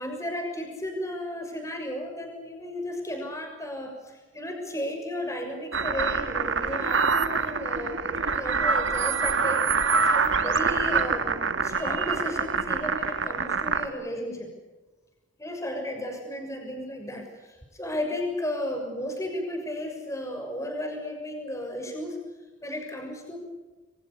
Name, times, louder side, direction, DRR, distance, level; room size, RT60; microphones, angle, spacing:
voice 1, 0.0-14.5 15.4-22.2 22.6-23.4, left 1 dB, 15° left, 3 dB, 6.6 m, -34 dB
sound 1, 5.7-13.9, right 5 dB, 70° right, 1.8 m, -25 dB
27.5 x 25.5 x 7.0 m, 1.2 s
head